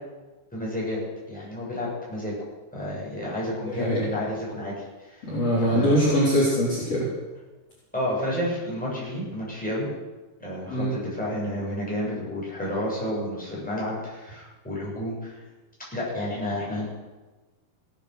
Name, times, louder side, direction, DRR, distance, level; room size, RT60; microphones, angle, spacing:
voice 1, 0.5-1.0 1.3-2.3 2.7-4.7 5.1-5.2 5.6-6.0 7.9-9.9 10.4-15.3 15.9-16.9, left 1 dB, ahead, -6 dB, 6.8 m, -30 dB
voice 2, 5.3-7.1 10.7-10.9, equal, 40° left, -7 dB, 4.4 m, -22 dB
18.0 x 10.0 x 6.6 m, 1.2 s
omnidirectional pair, 4.5 m